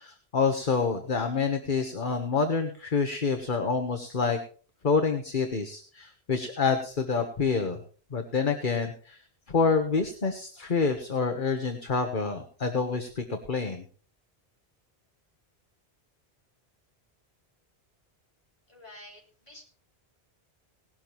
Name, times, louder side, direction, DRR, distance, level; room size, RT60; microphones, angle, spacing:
voice 1, 0.0-4.4 4.8-7.8 8.1-9.2 9.5-13.8, left 5 dB, 50° left, 5 dB, 1.5 m, -27 dB
voice 2, 18.7-19.6, left 1 dB, 30° left, -3 dB, 5.6 m, -49 dB
18.5 x 12.5 x 3.1 m, 0.42 s
omnidirectional pair, 1.1 m